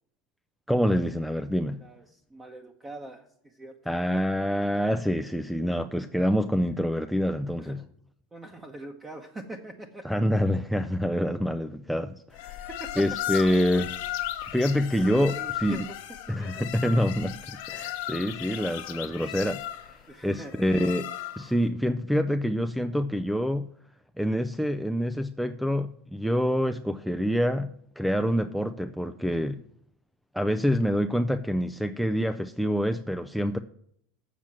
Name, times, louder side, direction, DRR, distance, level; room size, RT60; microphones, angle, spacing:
voice 1, 0.7-1.8 3.9-7.8 10.0-12.7 13.0-13.9 14.5-15.3 15.6-15.8 16.3-20.0 20.2-21.1 21.4-23.7 24.2-29.6 30.3-33.6, equal, ahead, 0.4 m, -26 dB
voice 2, 1.8-4.8 7.6-7.8 8.3-10.2 12.7-13.0 15.0-16.0 16.3-16.6 20.1-20.5, right 2 dB, 20° right, 1.0 m, -43 dB
sound 1, 12.3-21.6, left 13 dB, 70° left, 1.1 m, -36 dB
7.4 x 7.2 x 7.4 m
supercardioid pair, 110°, 0 cm